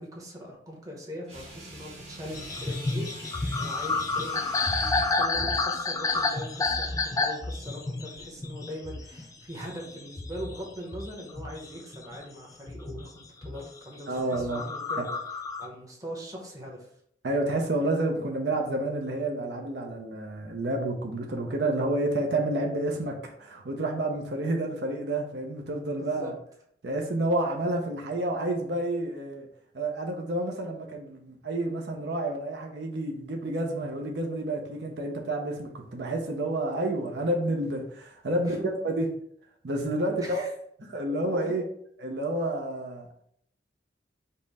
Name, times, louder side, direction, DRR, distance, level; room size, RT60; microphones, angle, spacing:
voice 1, 0.0-16.9 26.0-26.3 38.3-38.7 40.1-40.5, equal, 20° right, -2 dB, 0.9 m, -41 dB
sound 1, 1.2-5.2, right 1 dB, 35° right, 1.3 m, -45 dB
sound 2, 2.3-12.2 12.7-13.7 14.2-15.7, left 3 dB, 20° left, 0.3 m, -30 dB
voice 2, 14.1-14.6 15.0-15.1 17.2-26.3 26.8-29.5 29.7-39.2 39.6-40.4 40.9-41.6 42.0-43.1, right 1 dB, 70° right, 1 dB, 0.6 m, -29 dB
5.3 x 2.1 x 4.0 m, 0.68 s
head